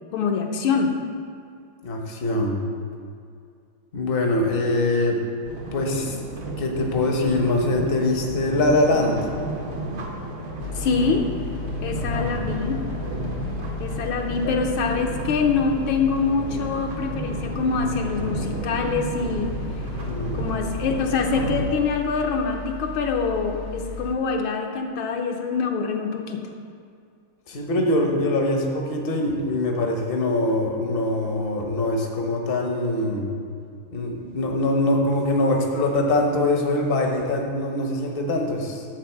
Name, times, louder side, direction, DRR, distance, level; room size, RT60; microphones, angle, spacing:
voice 1, 0.1-0.9 10.7-11.2 11.8-12.8 13.8-19.5 20.4-26.4, left 5 dB, 75° left, 3 dB, 1.4 m, -25 dB
voice 2, 1.8-2.6 3.9-5.2 5.7-6.2 6.6-9.2 12.0-12.4 14.4-14.5 20.0-20.4 27.5-33.2 33.9-38.9, left 2 dB, 40° left, 1 dB, 0.8 m, -23 dB
sound 1, 5.5-21.7, right 1 dB, 50° right, 0.8 m, -32 dB
sound 2, 10.6-24.2, left 4 dB, 90° left, 1.6 m, -36 dB
11.0 x 4.1 x 7.2 m, 2.4 s
omnidirectional pair, 2.4 m